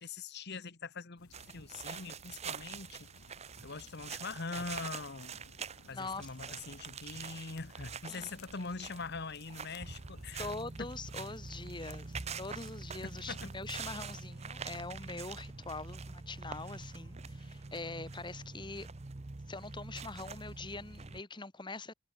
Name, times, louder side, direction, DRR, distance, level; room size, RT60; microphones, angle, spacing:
voice 1, 0.0-3.1 3.6-5.4 5.9-10.5 13.3-13.5, left 4 dB, 50° left, 1.3 m, -43 dB
sound 1, 1.2-13.8, left 3 dB, 90° left, 2.3 m, -60 dB
sound 2, 1.3-21.2, right 5 dB, 30° right, 0.7 m, -45 dB
sound 3, 5.2-18.5, right 3 dB, 70° right, 6.2 m, -69 dB
voice 2, 5.9-6.6 8.1-8.4 10.4-18.9 19.5-21.9, left 3 dB, 20° left, 1.9 m, -43 dB
head